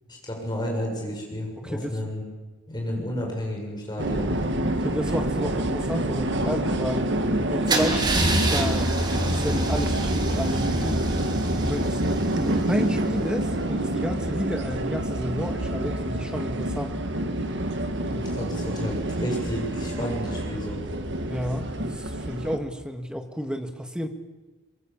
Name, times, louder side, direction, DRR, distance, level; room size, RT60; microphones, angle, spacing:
voice 1, 0.1-2.2 2.7-4.3 18.1-20.8, equal, 20° left, -1 dB, 7.3 m, -31 dB
sound 1, 4.0-22.6, right 1 dB, 55° right, 1.8 m, -27 dB
voice 2, 4.8-7.2 7.5-8.9 9.3-11.1 11.6-12.0 12.3-17.0 21.3-24.1, equal, 5° right, 5 dB, 1.7 m, -31 dB
Car / Engine starting / Idling, 7.7-13.5, right 1 dB, 20° right, 2.4 m, -27 dB
23.5 x 22.0 x 7.3 m, 1.3 s
head